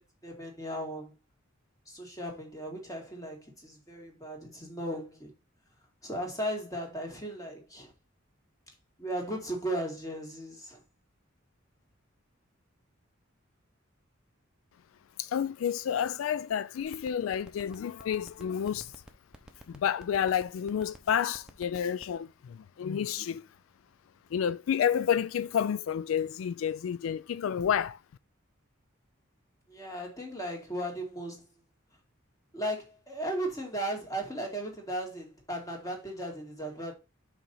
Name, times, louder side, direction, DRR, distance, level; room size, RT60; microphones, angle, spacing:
voice 1, 0.2-1.1 1.9-5.3 6.0-7.9 9.0-10.8 29.7-31.5 32.5-36.9, right 1 dB, 15° left, 2.2 m, -36 dB
voice 2, 15.2-18.9 19.7-23.5 24.3-28.0, left 8 dB, 80° left, 0.3 m, -30 dB
sound 1, 16.8-22.2, right 1 dB, 5° right, 0.9 m, -49 dB
5.6 x 4.1 x 5.4 m
head